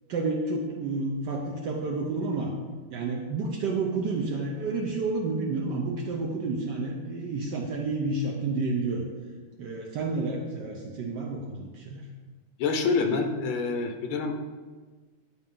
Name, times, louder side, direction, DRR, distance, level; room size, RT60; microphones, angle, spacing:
voice 1, 0.1-2.5 2.9-9.1 9.6-12.1, right 3 dB, 70° right, 0 dB, 1.2 m, -30 dB
voice 2, 12.6-14.3, left 4 dB, 85° left, 5 dB, 1.6 m, -26 dB
9.7 x 4.4 x 3.7 m, 1.4 s
omnidirectional pair, 2.3 m